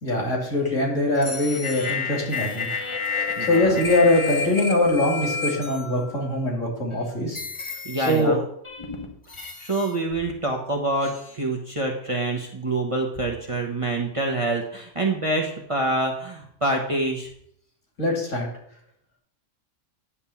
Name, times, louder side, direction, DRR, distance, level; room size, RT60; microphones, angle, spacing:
voice 1, 0.0-2.8 3.5-7.4 8.0-8.4 18.0-18.5, left 1 dB, 75° left, -1 dB, 2.8 m, -22 dB
sound 1, 1.2-6.4 6.9-7.0 7.3-8.2 8.6-10.3 11.0-11.4, left 5 dB, 25° left, 1.0 m, -31 dB
voice 2, 3.4-3.8 7.8-8.4 9.6-17.3, right 2 dB, 30° right, 0 dB, 0.9 m, -26 dB
9.8 x 3.5 x 7.0 m, 0.69 s
omnidirectional pair, 1.4 m